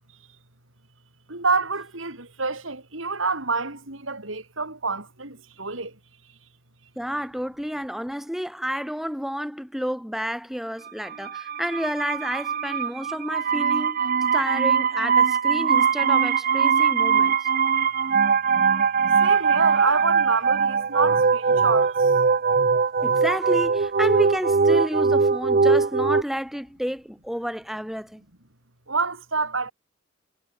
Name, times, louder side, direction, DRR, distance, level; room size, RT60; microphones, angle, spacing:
voice 1, 1.3-5.9 19.2-21.9 28.9-29.7, right 4 dB, 80° right, 6.1 m, -27 dB
voice 2, 7.0-14.0 14.3-17.5 19.8-19.9 23.0-28.2, equal, ahead, 5.1 m, -30 dB
sound 1, 11.1-26.2, right 5 dB, 45° right, 0.6 m, -21 dB
head